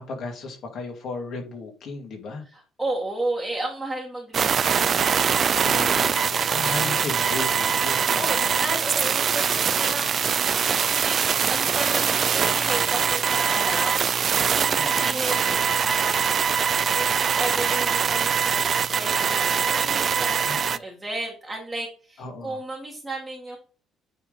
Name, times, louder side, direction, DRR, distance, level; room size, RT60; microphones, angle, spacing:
voice 1, 0.0-2.4 5.6-6.2 6.5-8.5 14.7-15.2 20.4-20.8 22.2-22.6, left 3 dB, 50° left, 2 dB, 2.3 m, -35 dB
voice 2, 2.8-6.4 8.2-10.2 10.6-14.1 14.5-16.5 16.9-23.6, right 2 dB, 10° right, -3 dB, 1.6 m, -33 dB
sound 1, 4.3-20.8, right 7 dB, 35° right, 0.3 m, -23 dB
9.1 x 3.7 x 4.0 m, 0.38 s
cardioid pair, 140°, 0 cm